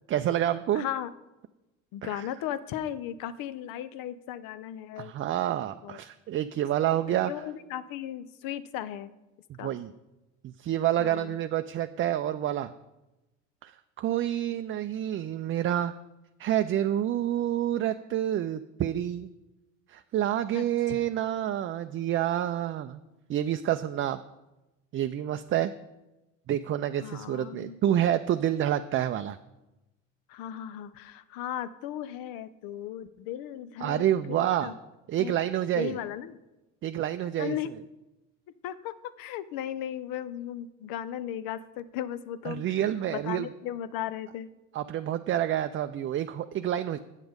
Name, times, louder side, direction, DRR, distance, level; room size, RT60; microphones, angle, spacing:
voice 1, 0.1-0.8 2.0-2.2 5.0-7.3 9.6-9.9 10.4-12.7 13.6-15.9 16.4-19.3 19.9-23.0 23.3-24.2 24.9-25.7 26.5-29.4 33.8-34.7 35.1-35.9 36.8-37.6 42.5-43.5 44.7-47.0, right 11 dB, 35° right, 9 dB, 0.4 m, -28 dB
voice 2, 0.7-1.1 1.9-5.1 5.8-6.0 7.1-9.1 9.6-9.8 11.0-11.4 20.5-21.0 27.0-27.8 30.3-34.8 35.2-35.4 35.8-36.4 37.4-37.7 38.6-42.8 43.1-44.5, left 11 dB, 65° left, 15 dB, 0.7 m, -36 dB
8.2 x 6.1 x 5.1 m, 1.0 s
hypercardioid pair, 75°, 37 cm